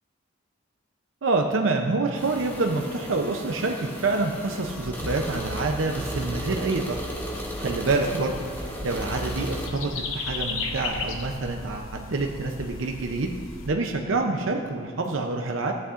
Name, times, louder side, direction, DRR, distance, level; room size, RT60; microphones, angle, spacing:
voice 1, 1.2-7.0 7.6-8.4 8.8-13.3 13.7-15.7, right 3 dB, 80° right, 3 dB, 0.6 m, -27 dB
sound 1, 2.1-9.7, equal, 10° left, 0.9 m, -35 dB
sound 2, 4.7-13.7, left 3 dB, 85° left, 0.9 m, -36 dB
16.5 x 8.3 x 2.5 m, 2.1 s
head